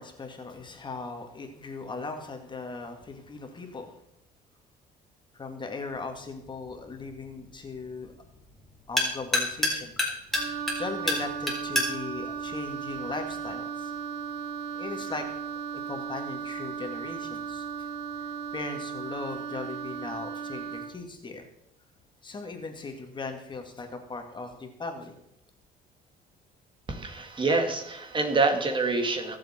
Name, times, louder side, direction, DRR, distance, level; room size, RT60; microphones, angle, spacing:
voice 1, 0.0-4.0 5.3-8.1 8.9-10.0 10.3-15.3 15.9-17.9 18.2-21.5 22.2-25.1, left 4 dB, 25° left, 4 dB, 2.2 m, -39 dB
sound 1, 5.9-13.5, left 1 dB, ahead, 3.8 m, -32 dB
Wind instrument woodwind instrument, 10.3-21.0, right 7 dB, 75° right, 1.6 m, -36 dB
voice 2, 26.9-29.4, right 3 dB, 30° right, 5 dB, 2.1 m, -26 dB
22.0 x 7.6 x 4.4 m, 0.79 s
cardioid pair, 110°, 17 cm